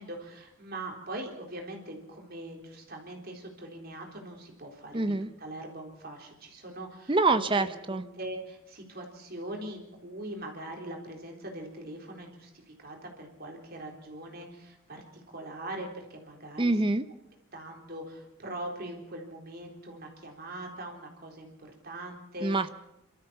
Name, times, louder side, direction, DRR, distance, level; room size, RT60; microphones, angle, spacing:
voice 1, 0.0-7.5 7.9-16.7 17.5-22.5, right 1 dB, 45° right, 1 dB, 3.9 m, -42 dB
voice 2, 4.9-5.3 7.1-8.0 16.6-17.1 22.4-22.7, right 3 dB, 25° right, 10 dB, 0.7 m, -25 dB
28.0 x 13.5 x 7.0 m, 0.90 s
head